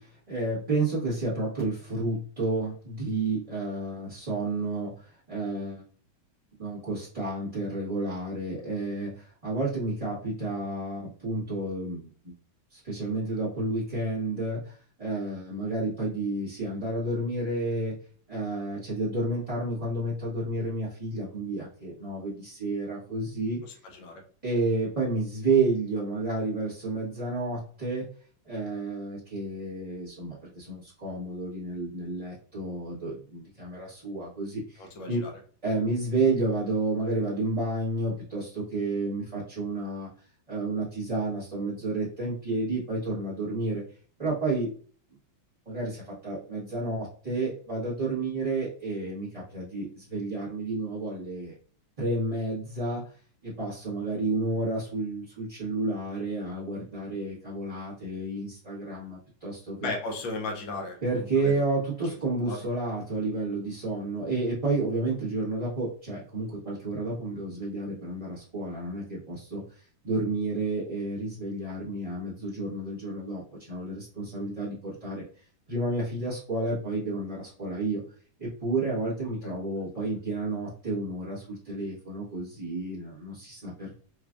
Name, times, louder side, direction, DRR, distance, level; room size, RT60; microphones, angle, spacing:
voice 1, 0.0-5.8 6.6-12.3 12.7-18.0 18.3-23.6 24.4-28.0 28.4-35.2 35.6-40.1 40.5-43.8 44.2-44.7 45.6-51.5 52.0-53.2 53.4-59.9 61.0-78.0 78.4-83.9, right 2 dB, 25° right, -9 dB, 0.9 m, -31 dB
voice 2, 34.8-35.3 59.8-61.5 62.4-62.6 79.4-79.5, left 2 dB, 75° left, 2 dB, 1.6 m, -35 dB
4.7 x 2.3 x 2.4 m, 0.43 s
omnidirectional pair, 2.2 m